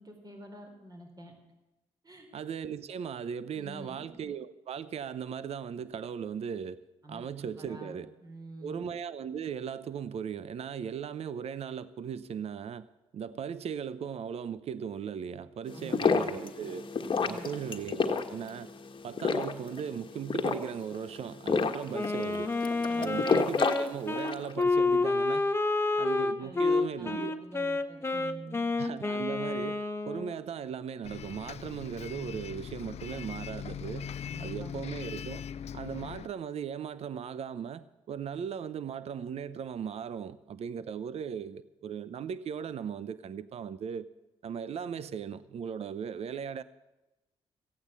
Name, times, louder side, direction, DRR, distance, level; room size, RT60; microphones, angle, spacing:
voice 1, 0.0-1.3 2.0-2.3 3.5-4.0 7.0-8.8 15.7-16.3 17.2-17.5 22.9-23.2 26.4-28.7 34.2-34.9, right 1 dB, 30° right, 3.8 m, -47 dB
voice 2, 2.3-6.8 7.1-8.1 8.6-12.9 13.1-16.9 17.2-18.7 19.0-22.5 23.0-25.5 26.0-27.4 28.8-34.1 34.4-35.4 35.7-44.1 44.4-46.6, right 7 dB, 60° right, 0.7 m, -38 dB
sound 1, 15.7-24.5, left 5 dB, 40° left, 1.4 m, -30 dB
Wind instrument woodwind instrument, 21.9-30.4, left 3 dB, 20° left, 1.0 m, -29 dB
Bus, 31.0-36.3, left 8 dB, 60° left, 0.5 m, -40 dB
15.5 x 8.8 x 8.2 m
cardioid pair, 75°, 12 cm